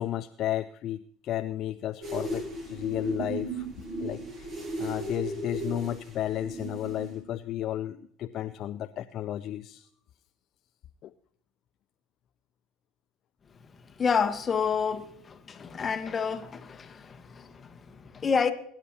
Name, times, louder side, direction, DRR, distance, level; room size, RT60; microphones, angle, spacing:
voice 1, 0.0-3.7 4.0-9.9 11.0-11.1, left 12 dB, 50° left, 0.4 m, -33 dB
sound 1, 2.0-7.2, right 2 dB, 45° right, 7.2 m, -36 dB
voice 2, 14.0-18.5, left 6 dB, 30° left, 1.4 m, -29 dB
23.0 x 10.5 x 2.9 m
hypercardioid pair, 75°, 0 cm